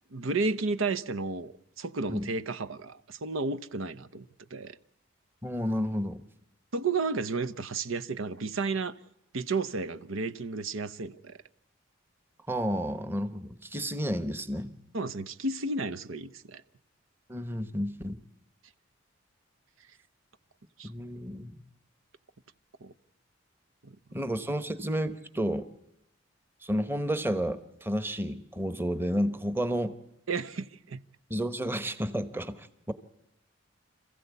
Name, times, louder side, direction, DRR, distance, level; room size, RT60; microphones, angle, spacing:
voice 1, 0.1-1.5 1.8-4.2 4.5-4.8 6.7-9.0 9.3-11.4 14.9-16.6 20.8-20.9 22.8-22.9 23.8-23.9 30.3-31.0, right 3 dB, 90° right, 0.9 m, -32 dB
voice 2, 5.4-6.2 12.5-14.7 17.3-18.2 20.8-21.6 24.1-25.7 26.6-30.0 31.3-32.9, equal, 10° right, 1.0 m, -31 dB
27.0 x 15.5 x 8.3 m
head